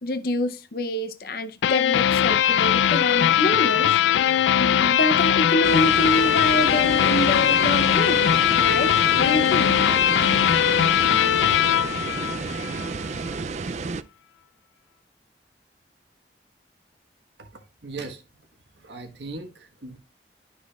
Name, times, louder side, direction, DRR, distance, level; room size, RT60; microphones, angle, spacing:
voice 1, 0.0-3.9 4.5-8.3 8.6-9.8, left 1 dB, 55° left, 0.6 m, -26 dB
sound 1, 1.6-12.9, left 10 dB, 85° left, 0.3 m, -20 dB
sound 2, 5.6-14.0, right 4 dB, 40° right, 0.3 m, -31 dB
voice 2, 17.8-18.2 18.7-20.0, right 3 dB, 80° right, 1.4 m, -38 dB
11.5 x 6.0 x 2.3 m
head